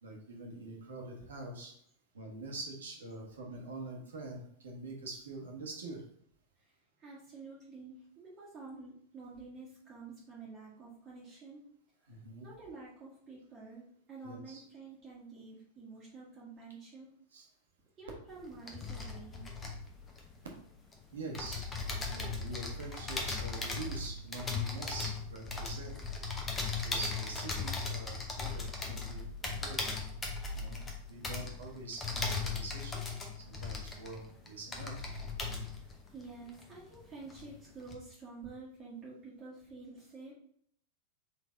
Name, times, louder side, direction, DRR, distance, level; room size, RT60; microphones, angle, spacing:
voice 1, 0.0-1.7 2.1-6.0 12.1-12.5 14.2-14.6 17.3-17.5 21.1-21.7 22.1-26.0 26.7-29.8 30.5-30.8 31.1-33.1 33.5-35.1, right 2 dB, 65° right, 0 dB, 1.2 m, -44 dB
voice 2, 6.6-11.6 12.1-17.1 18.0-19.4 35.8-40.3, right 4 dB, 25° right, -7 dB, 1.2 m, -49 dB
sound 1, 18.3-20.9 21.3-37.0 37.3-38.0, left 4 dB, 20° left, 0.9 m, -38 dB
4.3 x 3.3 x 3.7 m, 0.65 s
figure-of-eight pair, 90°, 0 cm